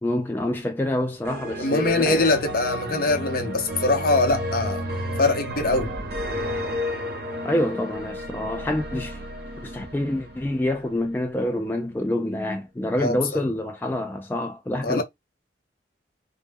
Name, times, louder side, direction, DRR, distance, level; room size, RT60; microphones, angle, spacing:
voice 1, 0.0-2.4 7.4-9.2 9.6-15.0, left 1 dB, 10° left, 0.3 m, -27 dB
sound 1, 1.2-11.3, equal, 60° right, 0.8 m, -32 dB
voice 2, 1.6-4.8 5.2-5.9 13.0-13.5 14.8-15.0, left 2 dB, 55° left, 0.7 m, -23 dB
2.2 x 2.1 x 3.3 m
head